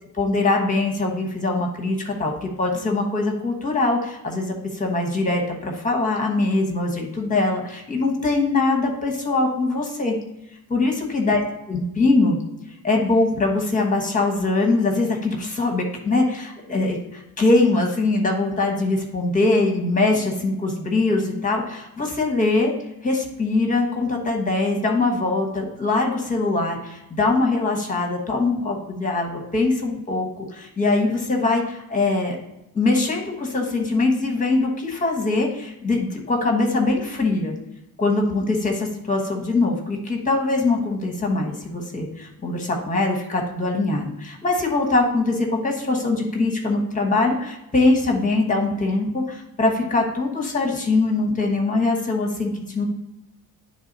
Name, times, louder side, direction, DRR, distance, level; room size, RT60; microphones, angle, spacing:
voice 1, 0.2-10.1 10.7-11.4 11.7-12.4 12.8-17.0 17.4-22.7 23.0-32.4 32.7-37.5 38.0-52.9, left 3 dB, 20° left, 1 dB, 1.2 m, -22 dB
9.9 x 3.3 x 4.0 m, 0.90 s
wide cardioid pair, 155°, 39 cm